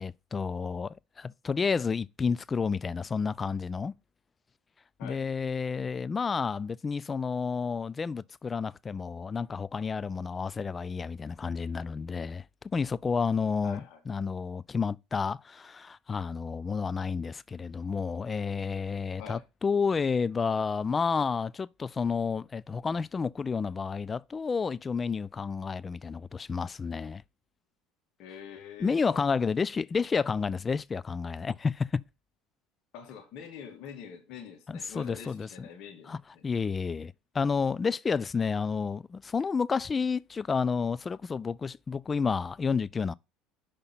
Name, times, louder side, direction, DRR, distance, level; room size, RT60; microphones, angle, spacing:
voice 1, 0.0-3.9 5.0-12.4 12.7-27.2 28.8-31.9 34.7-35.5 36.1-36.2 36.4-43.1, left 5 dB, 30° left, 0.3 m, -30 dB
voice 2, 13.6-14.0 19.2-19.4 28.2-29.2 32.9-36.4, left 7 dB, 60° left, 2.1 m, -45 dB
5.9 x 5.1 x 5.7 m
hypercardioid pair, 75°, 0 cm